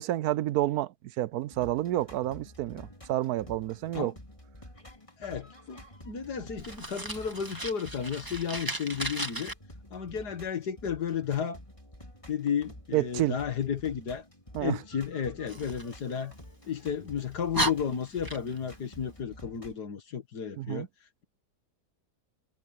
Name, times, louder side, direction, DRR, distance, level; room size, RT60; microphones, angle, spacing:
voice 1, 0.0-4.1 12.9-13.4 14.5-14.8 20.6-20.9, right 14 dB, 75° right, 1.1 m, -29 dB
sound 1, 1.3-19.8, left 1 dB, 20° left, 4.1 m, -50 dB
voice 2, 5.2-9.5 9.9-11.6 12.3-14.2 14.6-16.3 16.7-20.9, left 7 dB, 85° left, 2.3 m, -33 dB
Fire, 6.6-9.5 15.5-16.7 17.2-17.3 17.5-18.7, right 2 dB, 15° right, 2.0 m, -35 dB
omnidirectional pair, 1.7 m